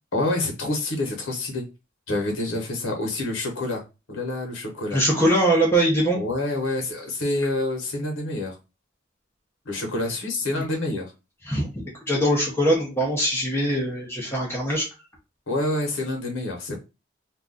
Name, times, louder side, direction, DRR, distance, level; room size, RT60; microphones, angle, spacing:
voice 1, 0.1-1.6 2.1-3.8 4.1-5.0 6.1-8.5 9.6-11.1 15.5-16.8, left 2 dB, 90° left, 1 dB, 0.9 m, -27 dB
voice 2, 4.9-6.2 11.5-14.8, right 1 dB, 15° left, -3 dB, 0.7 m, -22 dB
2.4 x 2.2 x 3.7 m, 0.28 s
head